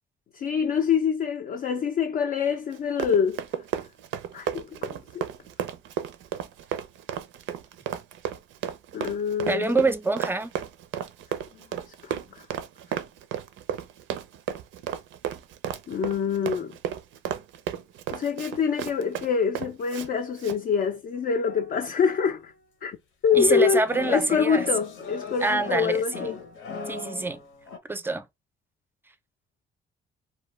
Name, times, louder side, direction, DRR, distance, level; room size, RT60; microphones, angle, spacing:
voice 1, 0.3-3.4 4.3-5.2 8.9-9.8 12.0-12.4 15.9-16.7 18.1-22.5 22.8-23.0 23.2-26.4, left 6 dB, 50° left, 0.4 m, -25 dB
Run, 2.7-20.1 20.4-20.6, right 9 dB, 75° right, 0.4 m, -33 dB
voice 2, 9.5-10.5 23.4-24.7 25.4-26.3 26.9-27.4 27.9-28.2, right 3 dB, 10° right, 0.4 m, -25 dB
sound 1, 21.2-22.6 23.3-27.8, left 4 dB, 85° left, 0.8 m, -39 dB
2.3 x 2.2 x 3.0 m
cardioid pair, 90°, 20 cm